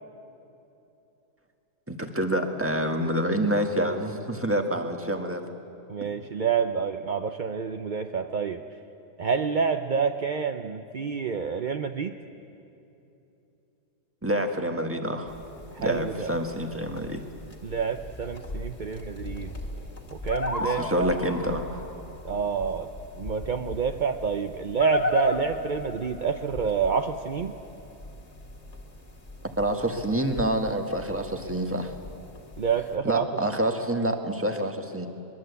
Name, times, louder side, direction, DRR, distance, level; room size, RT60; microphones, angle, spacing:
voice 1, 1.9-5.4 14.2-15.3 15.8-17.2 20.6-21.8 29.6-31.9 33.0-35.1, right 1 dB, 10° right, 4 dB, 1.5 m, -27 dB
voice 2, 5.9-8.6 9.2-12.1 15.7-16.3 17.6-19.5 20.1-21.1 22.2-22.9 23.2-27.5 32.6-33.2, right 6 dB, 50° right, 6 dB, 0.6 m, -28 dB
sound 1, 15.3-33.0, left 2 dB, 25° left, 2.0 m, -37 dB
22.5 x 22.0 x 8.2 m, 2.8 s
omnidirectional pair, 1.7 m